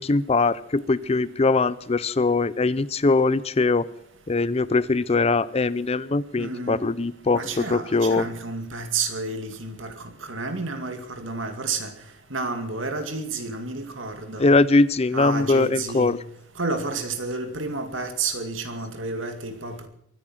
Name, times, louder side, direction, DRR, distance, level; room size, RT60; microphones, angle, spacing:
voice 1, 0.0-3.9 4.3-8.3 14.4-16.2, left 3 dB, 30° left, 18 dB, 0.5 m, -21 dB
voice 2, 6.4-6.8 7.3-11.9 12.3-14.5 15.1-16.2 16.6-19.9, right 3 dB, 80° right, 7 dB, 2.4 m, -30 dB
23.5 x 10.0 x 5.9 m, 0.69 s
head